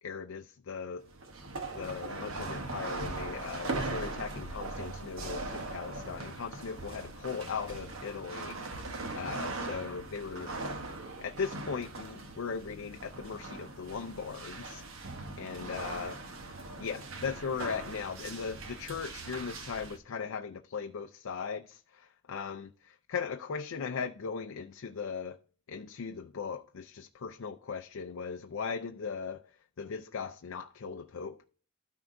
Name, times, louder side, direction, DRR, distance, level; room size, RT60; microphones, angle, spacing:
voice 1, 0.0-1.0 1.7-8.6 9.1-10.5 11.2-14.8 15.4-16.2 16.8-22.7 23.1-25.4 25.7-29.4 29.8-31.5, left 5 dB, 70° left, 0.5 m, -38 dB
sound 1, 1.0-20.0, right 2 dB, 70° right, 1.0 m, -40 dB
13.0 x 4.5 x 2.6 m
head